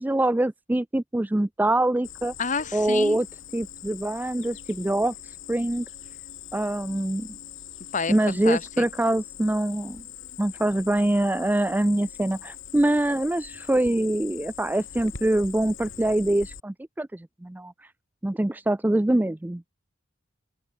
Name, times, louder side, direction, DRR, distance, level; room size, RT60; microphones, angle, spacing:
voice 1, 0.0-2.3 2.7-3.3 3.5-5.9 6.5-7.4 8.1-10.0 10.4-17.9 18.2-19.6, right 1 dB, 10° right, 0.3 m, -24 dB
Cricket, 2.0-16.6, left 9 dB, 65° left, 4.7 m, -42 dB
voice 2, 2.4-3.2 7.9-8.8, left 5 dB, 40° left, 1.2 m, -29 dB
open air
head